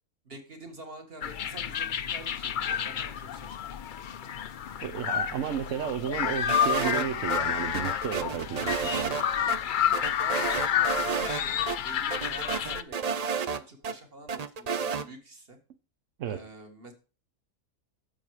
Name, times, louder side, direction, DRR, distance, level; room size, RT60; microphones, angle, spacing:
voice 1, 0.3-3.7 9.9-15.6 16.3-16.9, right 2 dB, 40° right, 5 dB, 2.0 m, -47 dB
sound 1, 1.2-12.8, left 9 dB, 70° left, 0.4 m, -30 dB
voice 2, 4.8-9.2 16.2-16.5, right 9 dB, 65° right, 10 dB, 1.1 m, -33 dB
sound 2, 6.5-7.4 7.7-9.2 9.5-9.6 9.9-11.4 11.7-11.8 12.1-13.9 14.3-15.1, right 6 dB, 85° right, 0.3 m, -31 dB
9.9 x 7.2 x 4.8 m, 0.34 s
omnidirectional pair, 1.5 m